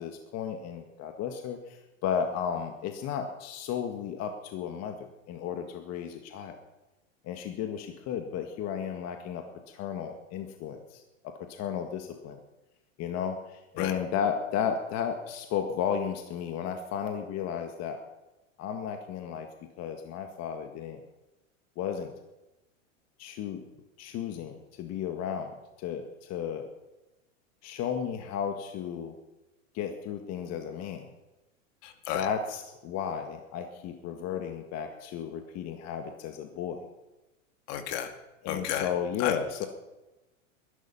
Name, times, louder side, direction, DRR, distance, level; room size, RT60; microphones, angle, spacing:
voice 1, 0.0-6.6 7.2-12.4 13.0-18.0 18.6-19.5 19.8-21.0 21.8-22.1 23.2-23.6 24.0-26.7 27.6-29.1 29.7-31.1 32.1-36.8 38.4-39.7, left 8 dB, 40° left, 5 dB, 1.9 m, -34 dB
voice 2, 31.8-32.3 37.7-38.1 38.5-38.9 39.2-39.4, left 10 dB, 60° left, 7 dB, 2.4 m, -32 dB
21.5 x 12.0 x 5.7 m, 1.0 s
hypercardioid pair, 115°, 39 cm